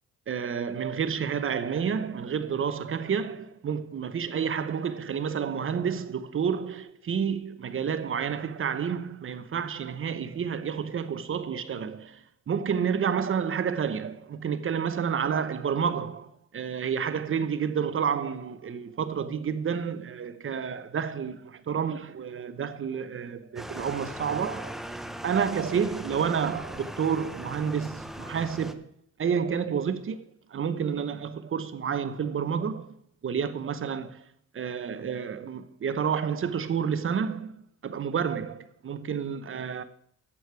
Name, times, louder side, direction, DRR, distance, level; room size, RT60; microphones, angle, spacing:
voice 1, 0.3-21.4 21.7-24.8 25.2-28.9 29.2-30.2 30.5-32.9 33.2-34.2 34.5-39.8, right 7 dB, 45° right, 0.9 m, -30 dB
sound 1, 23.6-28.7, equal, ahead, 0.8 m, -39 dB
11.5 x 8.5 x 4.7 m
cardioid pair, 90°, 30 cm